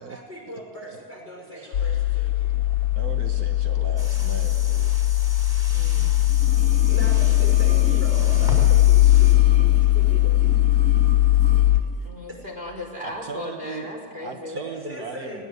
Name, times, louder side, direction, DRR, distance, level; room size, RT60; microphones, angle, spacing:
voice 1, 0.0-2.5 6.4-9.7 9.9-10.5 13.7-13.8 14.5-15.4, equal, 10° right, -1 dB, 6.3 m, -39 dB
voice 2, 1.6-5.0 13.0-13.9 14.2-15.4, right 5 dB, 85° right, 5 dB, 1.8 m, -39 dB
sound 1, 1.7-11.8, left 15 dB, 75° left, 1.2 m, -19 dB
sound 2, 4.0-9.4, left 1 dB, 15° left, 4.7 m, -38 dB
voice 3, 5.7-6.3 12.0-14.6, left 1 dB, 40° right, -1 dB, 4.6 m, -36 dB
sound 3, 6.3-11.7 12.0-12.1, right 2 dB, 60° right, 3.3 m, -37 dB
20.5 x 18.0 x 8.0 m, 2.2 s
omnidirectional pair, 1.6 m